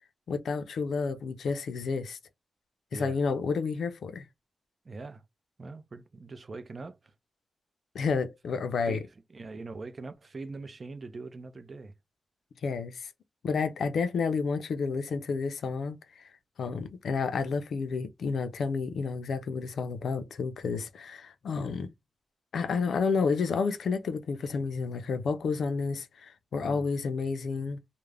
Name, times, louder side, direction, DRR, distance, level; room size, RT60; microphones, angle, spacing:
voice 1, 0.3-2.2 2.9-4.2 7.9-9.0 12.6-13.1 13.4-16.3 16.6-21.9 22.5-27.8, left 5 dB, 85° left, 0.4 m, -30 dB
voice 2, 4.8-5.2 5.6-7.1 8.8-11.9 26.6-26.9, right 3 dB, 45° right, 0.4 m, -42 dB
2.4 x 2.0 x 3.2 m
wide cardioid pair, 95°, 0 cm